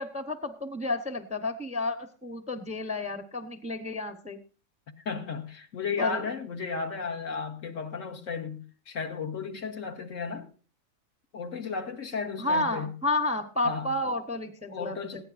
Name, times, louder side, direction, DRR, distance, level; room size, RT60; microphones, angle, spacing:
voice 1, 0.0-4.4 6.0-6.2 12.4-15.2, left 2 dB, 5° right, 0.7 m, -31 dB
voice 2, 5.0-10.5 11.3-13.0 13.6-14.2 14.7-15.2, left 5 dB, 65° left, 1.7 m, -34 dB
19.5 x 15.0 x 2.6 m
omnidirectional pair, 1.4 m